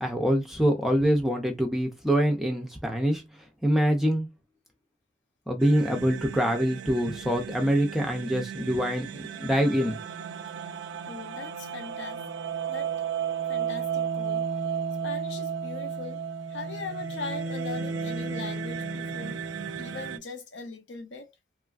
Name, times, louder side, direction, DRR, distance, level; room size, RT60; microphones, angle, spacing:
voice 1, 0.0-3.2 3.6-4.3 5.5-10.0, equal, ahead, 0.4 m, -25 dB
sound 1, 5.6-20.2, right 6 dB, 85° right, 0.3 m, -34 dB
voice 2, 11.1-12.2 12.7-12.9 13.5-14.4 15.0-16.2 16.5-19.4 19.8-21.3, left 4 dB, 85° left, 0.7 m, -40 dB
3.0 x 2.4 x 2.3 m
head